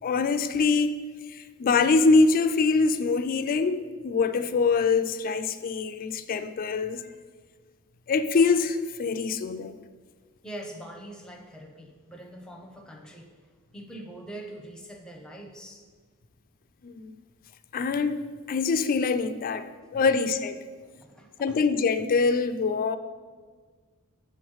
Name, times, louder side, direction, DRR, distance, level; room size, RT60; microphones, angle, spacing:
voice 1, 0.0-1.0 1.3-7.1 8.1-9.8 16.8-17.1 17.7-20.6 21.4-23.0, left 4 dB, 40° left, 11 dB, 0.3 m, -24 dB
voice 2, 10.4-13.4 13.7-15.8 20.1-20.2 20.8-21.6, right 1 dB, 5° left, 2 dB, 0.6 m, -43 dB
7.8 x 3.1 x 6.3 m, 1.5 s
head